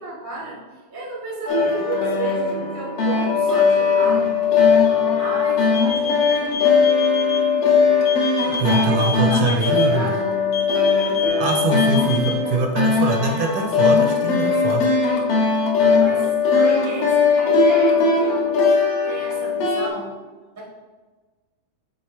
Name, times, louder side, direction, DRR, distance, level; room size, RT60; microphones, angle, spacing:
voice 1, 0.0-6.9 8.6-10.3 16.0-18.5 19.0-20.1 20.5-20.6, right 3 dB, 25° right, -5 dB, 0.4 m, -33 dB
sound 1, 1.5-19.9, left 5 dB, 70° left, 1.6 m, -19 dB
sound 2, 5.7-7.4 8.1-9.9 10.5-12.3, left 6 dB, 90° left, 0.9 m, -28 dB
voice 2, 8.6-10.1 11.4-14.9, right 3 dB, 80° right, 3 dB, 2.0 m, -23 dB
7.5 x 3.5 x 4.3 m, 1.3 s
omnidirectional pair, 3.7 m